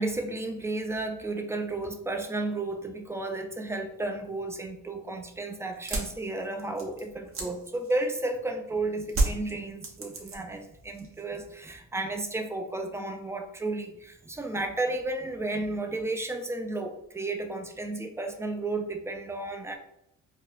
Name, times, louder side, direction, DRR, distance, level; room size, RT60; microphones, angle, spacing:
voice 1, 0.0-19.8, right 2 dB, 10° right, 5 dB, 0.3 m, -33 dB
sound 1, 5.7-8.5 9.1-10.6 10.9-11.5, right 2 dB, 45° right, 0.8 m, -31 dB
4.2 x 2.1 x 2.5 m, 0.79 s
cardioid pair, 90°, 30 cm